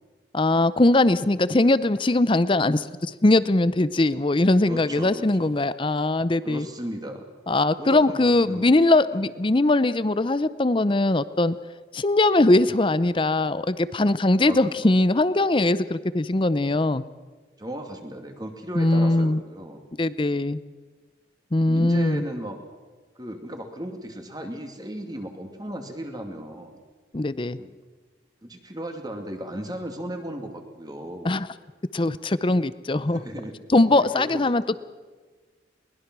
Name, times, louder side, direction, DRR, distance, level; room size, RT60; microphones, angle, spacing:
voice 1, 0.3-6.7 7.5-11.6 11.9-17.0 18.8-19.4 20.0-20.6 21.5-22.2 27.1-27.6 31.2-31.5 31.9-33.2 33.7-34.8, left 2 dB, 30° left, 15 dB, 0.6 m, -21 dB
voice 2, 4.6-5.5 6.4-7.3 7.8-8.7 14.4-14.9 17.6-19.8 21.6-22.6 23.2-26.8 27.6-27.7 28.4-31.3 33.0-33.6 33.9-34.3, equal, 20° right, 4 dB, 2.4 m, -36 dB
22.0 x 20.0 x 6.1 m, 1.4 s
head